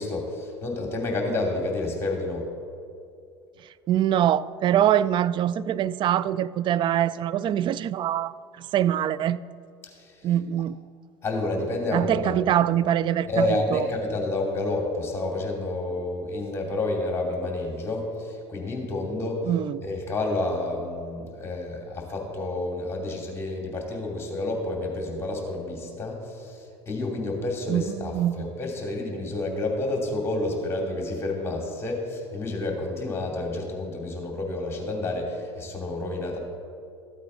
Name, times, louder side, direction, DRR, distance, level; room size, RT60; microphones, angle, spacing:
voice 1, 0.0-2.5 9.8-10.3 11.2-12.3 13.3-19.4 19.8-36.4, left 2 dB, 15° left, 2.7 m, -29 dB
voice 2, 3.9-9.4 10.2-10.8 11.9-13.8 19.5-19.8 27.7-28.5, right 11 dB, 35° right, 0.3 m, -24 dB
14.0 x 8.4 x 4.0 m
hypercardioid pair, 75°, 14 cm